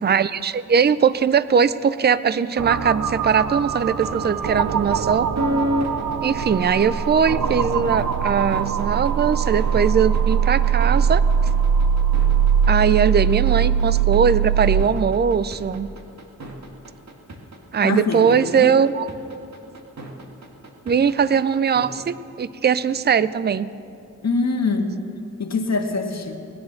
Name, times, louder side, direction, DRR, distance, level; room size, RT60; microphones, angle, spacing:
voice 1, 0.0-5.3 6.2-11.2 12.7-15.9 17.7-19.1 20.9-23.7, right 7 dB, 35° right, 16 dB, 0.5 m, -20 dB
sound 1, 2.6-14.8, right 7 dB, 75° right, 0.7 m, -21 dB
sound 2, 3.3-22.0, equal, 60° right, 2.0 m, -32 dB
voice 2, 17.8-18.7 24.2-25.0 25.4-26.4, left 3 dB, 60° left, 3 dB, 1.7 m, -24 dB
19.0 x 10.5 x 6.5 m, 2.6 s
cardioid pair, 75°, 31 cm